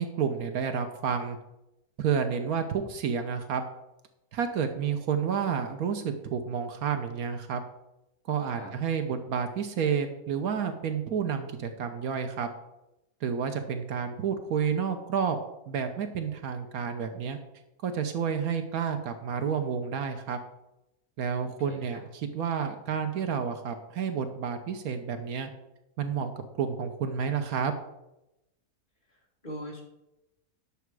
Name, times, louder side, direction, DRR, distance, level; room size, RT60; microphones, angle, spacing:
voice 1, 0.0-1.4 2.0-3.6 4.3-7.6 8.3-12.5 13.2-15.4 15.7-17.4 17.8-20.4 21.2-22.0 22.3-25.5 26.0-26.3 26.6-27.7, right 7 dB, 80° right, 7 dB, 1.3 m, -30 dB
voice 2, 21.4-22.0 29.1-29.8, equal, 35° left, -2 dB, 2.4 m, -43 dB
10.0 x 7.0 x 4.7 m, 0.90 s
omnidirectional pair, 1.5 m